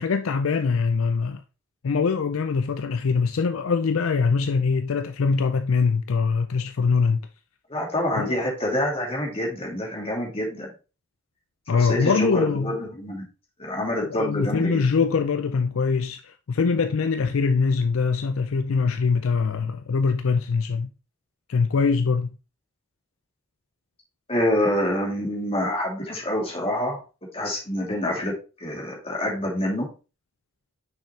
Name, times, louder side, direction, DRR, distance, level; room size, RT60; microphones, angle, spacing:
voice 1, 0.0-1.4 1.8-7.2 8.2-8.4 11.7-12.7 14.0-20.9 21.5-22.3, left 5 dB, 70° left, 0.5 m, -23 dB
voice 2, 7.7-10.7 11.7-13.3 13.6-14.9 24.3-27.0 27.3-29.9, left 1 dB, 25° left, 2.6 m, -27 dB
6.1 x 5.8 x 3.2 m
head